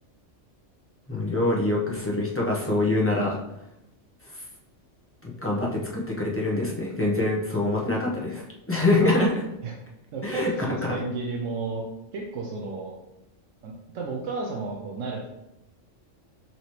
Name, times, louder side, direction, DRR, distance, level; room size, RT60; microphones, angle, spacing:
voice 1, 1.1-3.4 5.2-9.5 10.2-10.5, left 2 dB, 15° left, -4 dB, 0.5 m, -25 dB
voice 2, 10.1-11.8 12.1-13.0 13.6-15.3, right 3 dB, 90° right, -1 dB, 1.0 m, -32 dB
5.8 x 2.8 x 3.1 m, 0.90 s
omnidirectional pair, 1.3 m